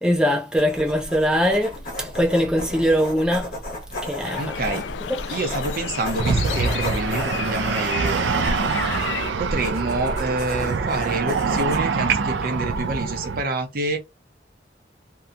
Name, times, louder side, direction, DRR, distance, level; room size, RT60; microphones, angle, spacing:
voice 1, 0.0-3.5 4.0-4.8 5.3-5.4, equal, 5° right, 0.4 m, -22 dB
sound 1, 0.6-13.3, left 1 dB, 55° left, 1.1 m, -34 dB
sound 2, 4.2-9.3, left 7 dB, 80° left, 0.3 m, -32 dB
voice 2, 4.4-4.9 5.3-8.3 9.4-14.0, right 2 dB, 55° right, 0.7 m, -27 dB
sound 3, 6.2-13.4, right 5 dB, 85° right, 0.4 m, -25 dB
2.8 x 2.2 x 2.5 m
head